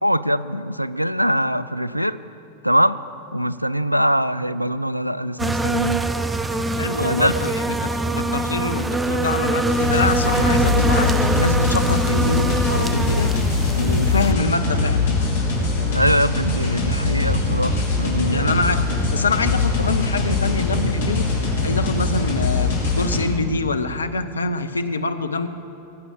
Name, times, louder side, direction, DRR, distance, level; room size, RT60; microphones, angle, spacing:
voice 1, 0.0-2.2 2.6-3.0 3.3-6.1 6.9-7.3 15.9-18.8, equal, 90° right, 16 dB, 0.4 m, -22 dB
sound 1, 5.4-14.3, right 2 dB, 10° right, 0.6 m, -23 dB
voice 2, 6.6-13.4 13.8-15.1 18.3-21.3 21.6-22.7 23.0-25.5, left 3 dB, 75° left, 9 dB, 0.7 m, -25 dB
sound 2, 9.7-23.2, left 3 dB, 60° left, 3.4 m, -22 dB
18.0 x 8.3 x 7.6 m, 2.7 s
figure-of-eight pair, 90°, 0 cm